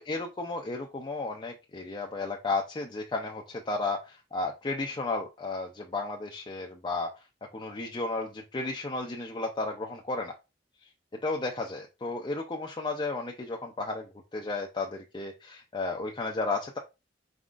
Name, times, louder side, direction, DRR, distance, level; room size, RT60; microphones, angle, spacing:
voice 1, 0.0-7.1 7.5-10.3 11.2-16.8, left 3 dB, 25° left, 1 dB, 0.4 m, -33 dB
4.2 x 3.7 x 2.4 m, 0.27 s
head